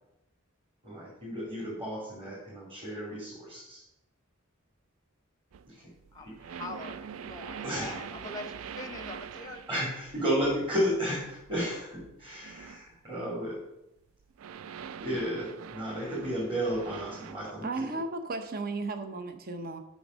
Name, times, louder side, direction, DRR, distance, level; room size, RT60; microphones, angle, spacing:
voice 1, 0.8-3.8 5.7-5.8 6.2-6.3 7.6-8.0 9.7-13.6 15.0-17.9, equal, 25° right, -6 dB, 2.5 m, -33 dB
sound 1, 5.5-13.0 13.3-13.5 14.2-17.5, right 7 dB, 75° right, 0.3 m, -44 dB
voice 2, 6.1-9.6, left 3 dB, 15° left, 7 dB, 0.7 m, -43 dB
voice 3, 17.6-19.8, right 3 dB, 45° right, 8 dB, 0.8 m, -34 dB
7.1 x 5.2 x 6.2 m, 0.85 s
head